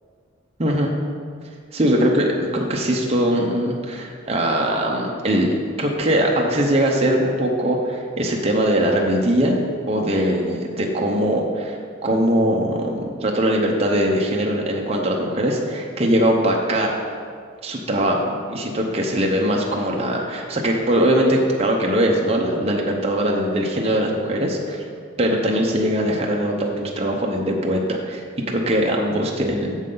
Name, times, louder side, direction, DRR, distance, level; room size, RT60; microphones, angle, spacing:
voice 1, 0.6-0.9 1.7-2.3 2.5-5.5 5.8-9.6 9.9-11.8 12.0-17.0 17.6-24.8 25.2-28.2 28.5-29.8, right 1 dB, 30° right, -1 dB, 0.7 m, -21 dB
9.1 x 6.6 x 3.8 m, 2.2 s
head